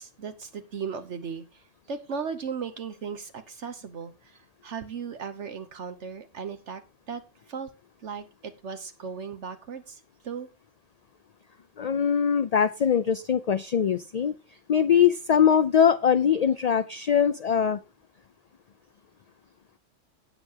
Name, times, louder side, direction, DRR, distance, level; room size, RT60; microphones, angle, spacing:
voice 1, 0.0-1.6 1.9-6.8 7.1-7.2 7.5-7.7 8.0-10.5, right 6 dB, 70° right, 9 dB, 1.2 m, -37 dB
voice 2, 11.8-14.3 14.7-17.8, left 8 dB, 50° left, 12 dB, 0.4 m, -22 dB
17.5 x 6.8 x 2.9 m, 0.28 s
omnidirectional pair, 1.3 m